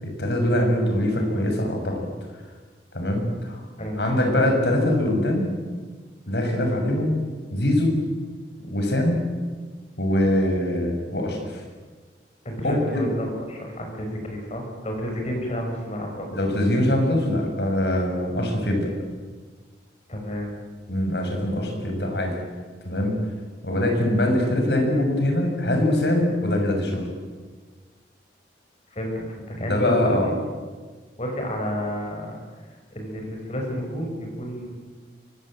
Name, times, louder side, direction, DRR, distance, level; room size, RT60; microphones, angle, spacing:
voice 1, 0.0-2.1 2.9-3.6 4.0-5.5 6.3-7.1 7.5-7.9 8.6-9.2 10.0-11.6 12.6-13.1 16.3-18.9 20.9-22.4 22.8-23.2 23.6-27.1 29.7-30.3, left 1 dB, 70° left, 3 dB, 6.8 m, -23 dB
voice 2, 3.8-4.4 12.4-16.3 20.1-20.5 28.9-30.3 31.2-32.4 32.9-34.7, equal, 40° left, 1 dB, 6.4 m, -31 dB
24.5 x 22.0 x 9.0 m, 1.4 s
head